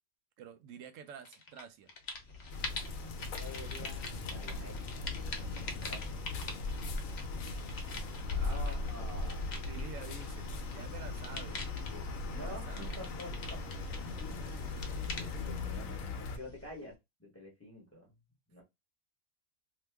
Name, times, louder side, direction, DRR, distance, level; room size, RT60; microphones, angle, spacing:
voice 1, 0.4-1.9 8.3-8.6 9.6-11.7 12.3-12.8, right 7 dB, 75° right, 0.9 m, -49 dB
sound 1, 1.3-1.6 1.9-16.9, left 3 dB, 55° left, 0.9 m, -42 dB
sound 2, 2.5-16.4, left 3 dB, 80° left, 1.0 m, -40 dB
voice 2, 3.4-5.2 5.8-6.0 8.4-9.5 12.3-13.6 15.0-16.9 17.2-18.1 18.5-18.6, left 1 dB, 10° left, 0.9 m, -48 dB
2.8 x 2.2 x 3.3 m
omnidirectional pair, 1.4 m